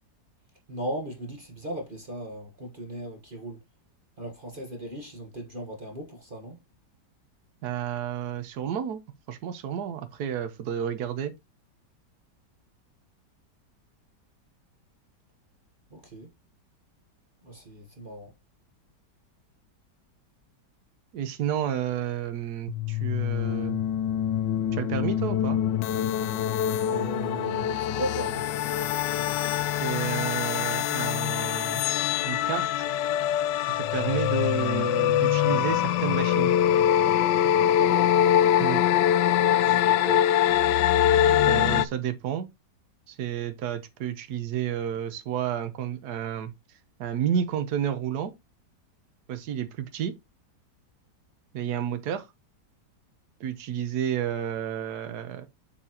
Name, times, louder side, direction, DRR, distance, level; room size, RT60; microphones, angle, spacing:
voice 1, 0.7-3.6 4.2-6.6 15.9-16.3 17.4-18.3 26.8-28.5 37.8-38.1 39.5-40.3, right 1 dB, 35° right, 1.3 m, -37 dB
voice 2, 7.6-9.0 9.3-11.3 21.1-23.8 24.7-25.6 29.8-31.8 32.2-32.9 33.8-36.5 38.6-38.8 41.5-42.5 43.1-46.5 47.0-48.3 49.3-50.1 51.5-52.3 53.4-55.5, right 9 dB, 65° right, 1.4 m, -31 dB
sound 1, 22.7-41.8, left 11 dB, 85° left, 1.2 m, -24 dB
7.4 x 6.8 x 2.9 m
omnidirectional pair, 1.9 m